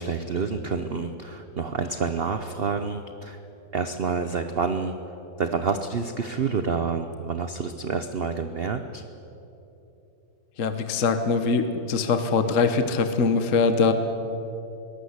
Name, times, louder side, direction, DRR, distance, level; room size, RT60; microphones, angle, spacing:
voice 1, 0.0-3.4 3.7-5.0 5.4-9.0, right 5 dB, 55° right, 8 dB, 0.6 m, -28 dB
voice 2, 10.6-13.9, left 4 dB, 45° left, 8 dB, 1.3 m, -22 dB
22.0 x 18.5 x 8.1 m, 3.0 s
omnidirectional pair, 2.1 m